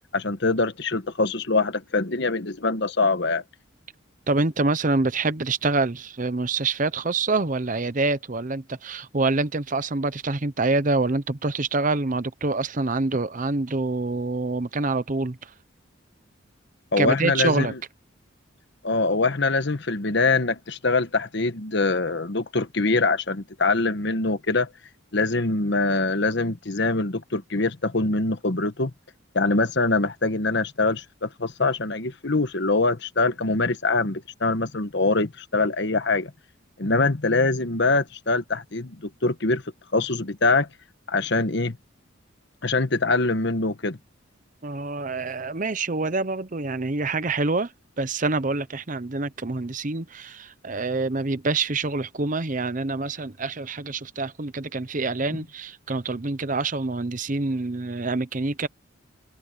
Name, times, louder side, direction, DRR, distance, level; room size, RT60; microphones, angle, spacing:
voice 1, 0.1-3.4 16.9-17.8 18.8-24.7 25.1-28.9 29.3-36.3 36.8-39.6 39.9-40.7 41.1-41.8 42.6-44.0, left 3 dB, 60° left, 1.2 m, -24 dB
voice 2, 4.3-15.5 17.0-17.7 44.6-47.7 48.0-58.7, right 3 dB, 40° right, 0.8 m, -26 dB
head